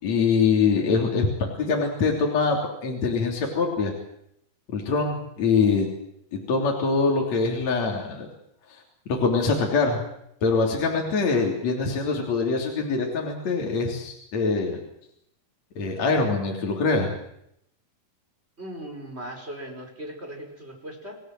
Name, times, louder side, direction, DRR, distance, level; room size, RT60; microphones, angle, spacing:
voice 1, 0.0-2.6 2.8-3.9 4.7-5.9 6.3-8.3 9.1-10.0 10.4-14.8 15.8-17.1, left 4 dB, 55° left, 0 dB, 4.4 m, -24 dB
voice 2, 18.6-21.1, right 1 dB, 20° right, 3 dB, 5.0 m, -38 dB
29.0 x 18.0 x 7.7 m, 0.76 s
omnidirectional pair, 3.7 m